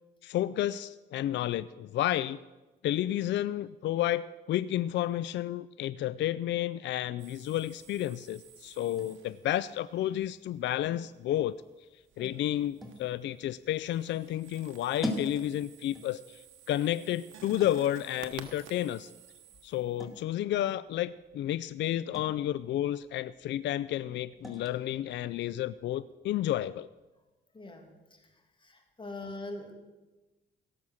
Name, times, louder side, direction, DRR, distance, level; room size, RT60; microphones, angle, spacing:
voice 1, 0.2-2.4 2.8-11.6 12.2-19.1 19.6-26.9, left 13 dB, 65° left, 17 dB, 0.4 m, -31 dB
sound 1, 7.2-9.7 12.1-13.2 13.5-20.2, right 8 dB, 75° right, 1.2 m, -53 dB
sound 2, 7.5-27.1, left 1 dB, ahead, 2.2 m, -47 dB
voice 2, 27.5-28.2 28.6-29.7, left 2 dB, 25° left, 3 dB, 2.5 m, -43 dB
17.0 x 7.2 x 6.4 m, 1.1 s
cardioid pair, 90°, 20 cm